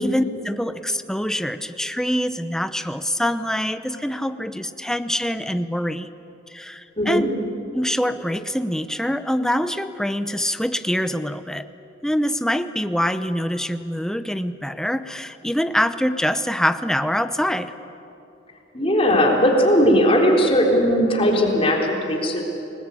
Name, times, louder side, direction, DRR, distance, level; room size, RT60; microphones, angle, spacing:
voice 1, 0.0-6.1 6.5-7.3 7.7-11.7 12.0-17.7, equal, 5° left, 10 dB, 0.7 m, -24 dB
voice 2, 7.0-7.3 18.7-22.4, equal, 30° left, 0 dB, 3.9 m, -18 dB
30.0 x 20.0 x 8.5 m, 2.9 s
head